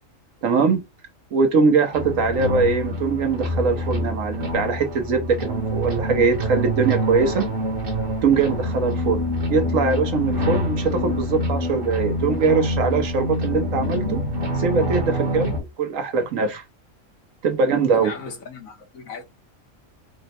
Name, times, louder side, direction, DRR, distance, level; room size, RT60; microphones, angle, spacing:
voice 1, 0.4-0.8 1.3-7.5 8.2-9.2 9.5-14.2 14.6-16.6 17.4-18.1, right 5 dB, 75° right, 1.2 m, -22 dB
sound 1, 1.9-15.6, equal, 45° right, 1.3 m, -26 dB
voice 2, 17.9-19.2, left 4 dB, 90° left, 1.7 m, -36 dB
4.1 x 2.1 x 4.1 m
omnidirectional pair, 1.4 m